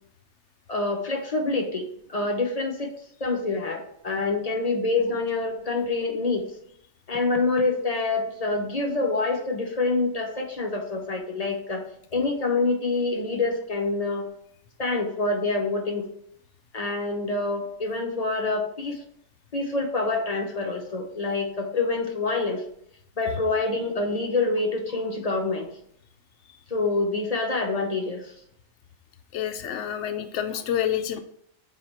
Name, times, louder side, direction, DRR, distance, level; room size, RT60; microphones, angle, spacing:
voice 1, 0.7-2.9 3.2-6.5 7.1-11.8 12.1-14.3 14.8-16.1 16.7-19.0 19.5-22.6 23.2-25.7 26.7-28.3, left 3 dB, 35° left, 3 dB, 0.8 m, -26 dB
voice 2, 29.3-31.2, left 10 dB, 90° left, 8 dB, 0.9 m, -28 dB
7.6 x 2.8 x 4.3 m, 0.69 s
omnidirectional pair, 1.2 m